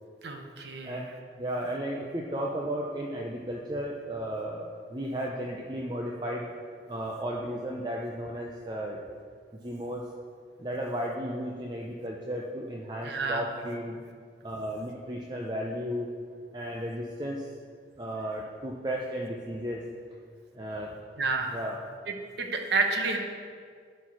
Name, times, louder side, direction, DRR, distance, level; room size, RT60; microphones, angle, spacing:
voice 1, 0.2-1.0 13.0-13.5 21.2-21.6 22.4-23.2, right 3 dB, 70° right, 4 dB, 1.0 m, -29 dB
voice 2, 1.4-6.5 6.9-9.0 9.6-10.0 10.6-14.0 14.4-16.1 16.5-17.5 18.0-19.9 20.5-20.9 21.5-21.8, equal, 25° right, -1 dB, 0.6 m, -34 dB
11.5 x 4.5 x 6.1 m, 2.1 s
head